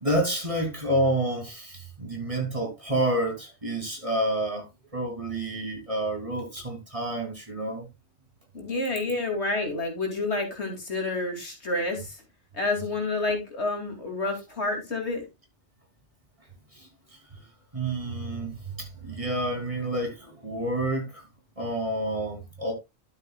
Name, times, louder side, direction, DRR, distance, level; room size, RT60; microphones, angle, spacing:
voice 1, 0.0-4.6 4.9-7.9 16.7-16.8 17.7-21.2 21.6-22.7, right 1 dB, 25° right, 3.1 m, -29 dB
voice 2, 8.5-12.2 12.5-15.3, left 2 dB, 65° left, 2.9 m, -29 dB
12.0 x 7.5 x 2.3 m
omnidirectional pair, 1.2 m